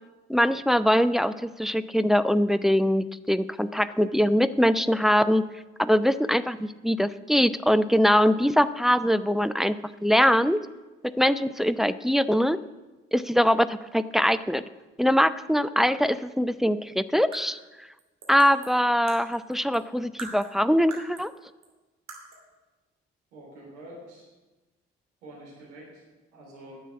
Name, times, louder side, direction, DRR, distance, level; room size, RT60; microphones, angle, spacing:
voice 1, 0.3-5.5 5.8-10.7 11.0-12.6 13.1-14.6 15.0-17.6 18.3-21.3, equal, ahead, 15 dB, 0.4 m, -22 dB
sound 1, 17.1-19.9 20.2-21.4 21.6-21.7 22.1-22.5, right 3 dB, 50° right, 2.7 m, -44 dB
voice 2, 23.3-24.2 25.2-26.0 26.3-26.8, right 1 dB, 75° right, -4 dB, 3.5 m, -46 dB
10.0 x 7.3 x 8.1 m, 1.1 s
figure-of-eight pair, 45°, 36 cm